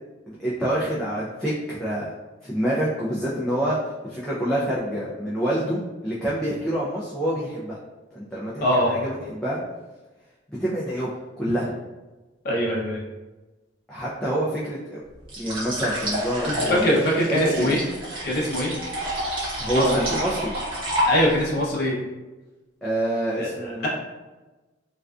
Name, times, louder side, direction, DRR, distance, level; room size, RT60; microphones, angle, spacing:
voice 1, 0.3-2.1 2.4-3.8 4.0-7.8 8.1-9.6 10.6-11.1 11.4-11.7 13.9-15.0 15.4-16.9 17.3-17.8 19.6-20.5 22.8-23.9, right 1 dB, 5° left, -8 dB, 0.3 m, -26 dB
voice 2, 8.6-9.0 12.4-13.0 16.4-17.8 18.2-18.7 19.7-20.0 21.1-21.9 23.4-23.9, left 1 dB, 55° left, -4 dB, 0.6 m, -23 dB
sound 1, 15.3-21.5, equal, 30° right, 0.8 m, -29 dB
2.4 x 2.2 x 2.3 m, 1.2 s
head